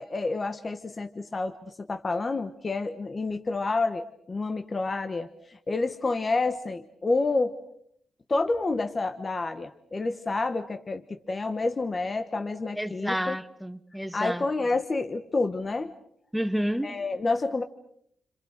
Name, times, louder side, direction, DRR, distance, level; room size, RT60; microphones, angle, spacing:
voice 1, 0.0-7.6 8.3-13.4 14.1-15.9 16.8-17.6, left 3 dB, 20° left, 1.1 m, -29 dB
voice 2, 12.7-14.4 16.3-16.9, equal, ahead, 1.1 m, -30 dB
30.0 x 27.0 x 6.6 m
wide cardioid pair, 170°, 0 cm